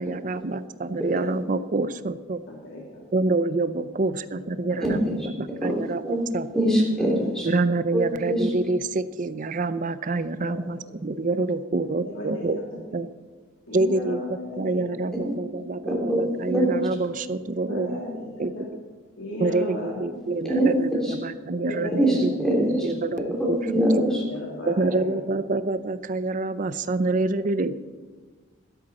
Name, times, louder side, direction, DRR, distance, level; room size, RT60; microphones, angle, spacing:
voice 1, 0.0-2.4 3.1-5.0 5.4-6.0 6.3-6.5 7.5-12.6 12.9-13.1 13.7-14.2 14.6-18.0 18.4-18.5 19.4-22.3 22.8-23.2 23.5-23.6 24.7-27.8, right 3 dB, 40° right, 13 dB, 0.6 m, -26 dB
voice 2, 0.9-1.3 2.5-3.0 4.4-4.9 7.0-7.1 10.4-10.6 12.0-13.0 13.7-15.1 17.7-18.7 19.2-20.0 20.3-20.7 21.6-22.3 22.5-22.7 24.2-25.2, left 1 dB, 85° left, -2 dB, 2.5 m, -35 dB
voice 3, 4.8-5.1 5.6-5.7 6.0-6.2 6.5-7.5 7.9-8.5 15.2-15.3 15.9-16.2 16.5-16.7 20.4-20.7 21.0-21.1 22.0-22.9 23.4-24.2, right 1 dB, 5° left, -3 dB, 3.2 m, -23 dB
12.5 x 12.5 x 4.3 m, 1.4 s
head